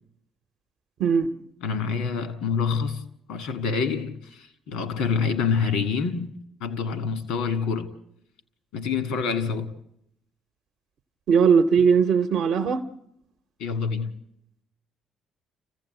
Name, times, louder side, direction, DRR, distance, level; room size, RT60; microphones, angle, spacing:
voice 1, 1.0-1.3 11.3-12.9, right 6 dB, 65° right, 0.8 m, -19 dB
voice 2, 1.6-3.0 3.3-6.3 6.6-7.9 8.7-9.7 13.6-14.1, left 5 dB, 80° left, 1.8 m, -26 dB
29.0 x 15.5 x 8.1 m
hypercardioid pair, 50°, 0 cm